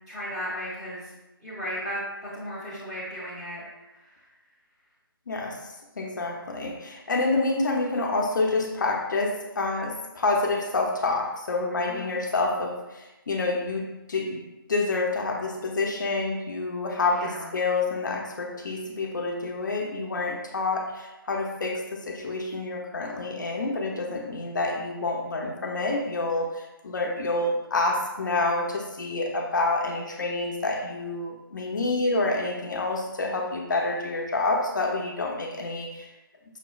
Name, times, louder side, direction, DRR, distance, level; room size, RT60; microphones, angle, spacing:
voice 1, 0.1-1.1 1.4-3.6 4.0-4.1 11.9-12.1 17.1-17.5, equal, 5° right, -11 dB, 0.9 m, -35 dB
voice 2, 5.3-5.6 6.0-14.4 14.7-36.1, left 3 dB, 55° left, 1 dB, 0.6 m, -28 dB
5.5 x 3.0 x 2.3 m, 1.0 s
figure-of-eight pair, 165°, 12 cm